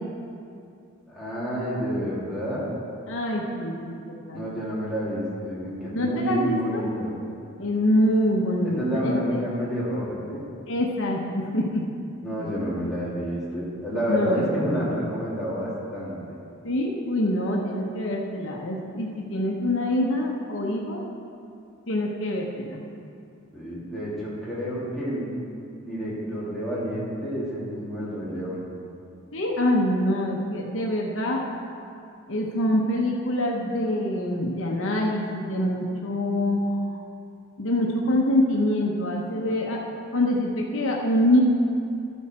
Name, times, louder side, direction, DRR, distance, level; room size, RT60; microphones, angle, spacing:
voice 1, 1.1-2.7 4.3-7.1 8.6-10.4 12.2-16.4 23.5-25.3 25.8-28.6, equal, ahead, -10 dB, 2.7 m, -29 dB
voice 2, 3.1-4.0 4.3-4.4 5.9-6.8 7.6-9.4 10.7-11.8 12.4-12.5 14.1-14.9 16.6-21.0 21.9-22.8 29.3-31.4 32.3-36.6 37.6-39.8 40.1-41.4, left 1 dB, 65° left, -1 dB, 1.1 m, -25 dB
13.0 x 7.9 x 4.5 m, 2.5 s
head